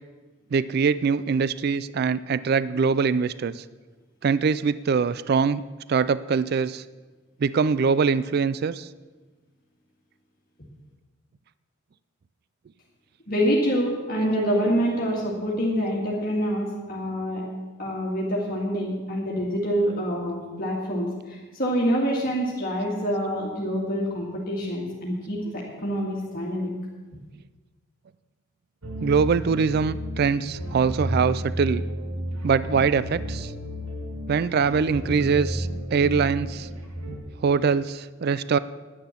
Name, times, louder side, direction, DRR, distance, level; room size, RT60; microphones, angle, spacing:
voice 1, 0.5-3.6 4.2-5.6 5.9-6.8 7.4-8.9 29.0-31.8 32.4-33.5 34.3-36.7 37.4-38.6, right 5 dB, 50° right, 16 dB, 0.3 m, -23 dB
voice 2, 13.3-17.4 17.8-26.7, equal, 45° left, -3 dB, 2.0 m, -26 dB
sound 1, 28.8-37.2, equal, 90° right, 2.0 m, -32 dB
10.5 x 10.0 x 7.2 m, 1.3 s
head